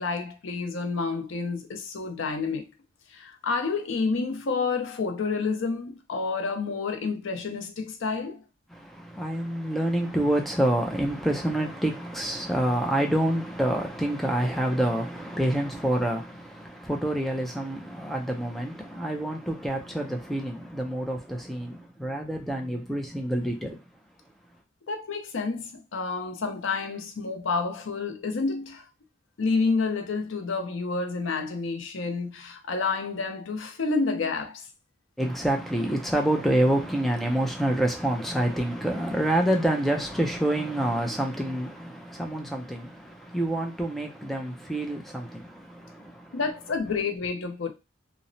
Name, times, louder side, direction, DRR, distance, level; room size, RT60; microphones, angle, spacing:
voice 1, 0.0-2.6 3.1-8.4 24.9-28.8 29.4-34.6 46.3-47.7, left 4 dB, 75° left, 0.5 m, -29 dB
voice 2, 8.7-23.8 35.2-46.4, right 1 dB, ahead, 0.3 m, -27 dB
2.9 x 2.0 x 2.6 m
head